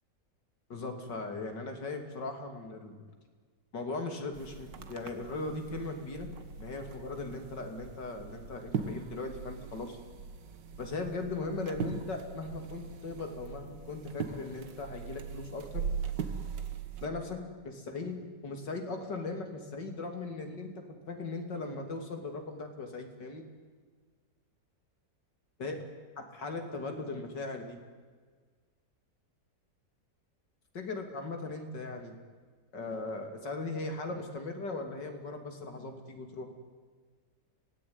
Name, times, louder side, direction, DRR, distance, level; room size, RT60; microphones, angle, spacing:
voice 1, 0.7-3.0 3.7-6.3 6.6-10.0 10.8-15.9 17.0-18.2 18.4-23.4 25.6-25.8 26.2-27.8 30.7-32.1 32.7-36.5, left 3 dB, 85° left, 5 dB, 3.5 m, -38 dB
sound 1, 4.3-17.1, right 6 dB, 85° right, 2.1 m, -40 dB
25.0 x 18.0 x 9.7 m, 1.5 s
omnidirectional pair, 1.8 m